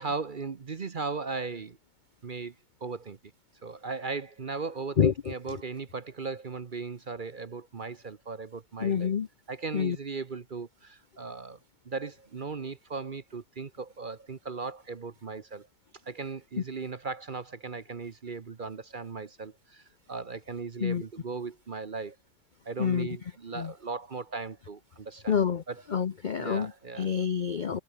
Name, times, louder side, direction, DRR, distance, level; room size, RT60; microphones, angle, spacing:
voice 1, 0.0-1.8 2.2-2.5 2.8-3.2 3.6-9.1 9.5-11.6 11.8-15.7 16.1-22.2 22.6-25.3 25.7-25.8 26.4-27.1, right 4 dB, 40° right, 0.8 m, -37 dB
voice 2, 5.0-5.3 8.8-9.3 9.7-10.0 20.8-21.0 22.8-23.1 23.5-23.7 25.3-25.6 25.9-26.7 27.0-27.8, left 7 dB, 75° left, 0.4 m, -27 dB
omnidirectional pair, 1.8 m